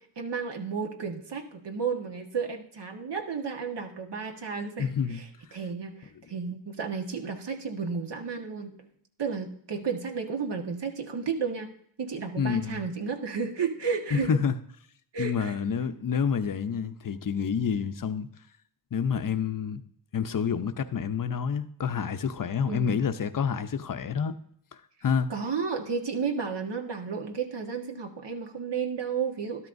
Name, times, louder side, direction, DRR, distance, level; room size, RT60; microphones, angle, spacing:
voice 1, 0.0-11.7 12.0-14.4 15.1-15.6 22.6-23.0 25.3-29.7, right 5 dB, 60° right, 1.6 m, -33 dB
voice 2, 4.8-5.2 12.4-12.8 14.1-14.5 15.2-18.3 18.9-19.8 20.1-24.3 25.0-25.3, left 6 dB, 45° left, 0.8 m, -28 dB
12.5 x 12.5 x 2.6 m
cardioid pair, 75°, 47 cm